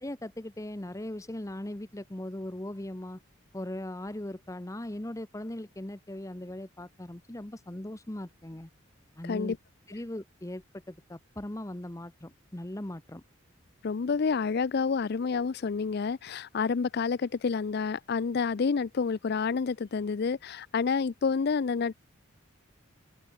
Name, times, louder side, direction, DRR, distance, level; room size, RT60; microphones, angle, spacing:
voice 1, 0.0-3.2 3.5-8.7 9.2-9.6 9.9-13.2, left 1 dB, 15° left, 0.9 m, -39 dB
voice 2, 9.2-9.6 13.8-21.9, left 5 dB, 50° left, 0.4 m, -29 dB
open air
head